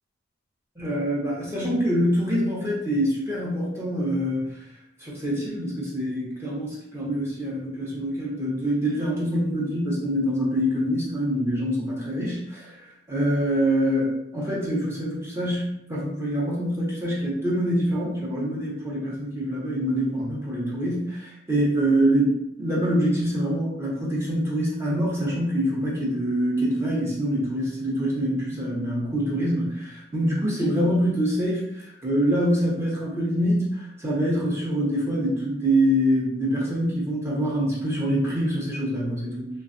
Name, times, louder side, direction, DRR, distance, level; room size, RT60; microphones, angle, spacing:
voice 1, 0.8-4.5 5.0-22.3 22.6-39.5, equal, 15° right, -5 dB, 0.8 m, -25 dB
3.1 x 2.4 x 2.5 m, 0.77 s
head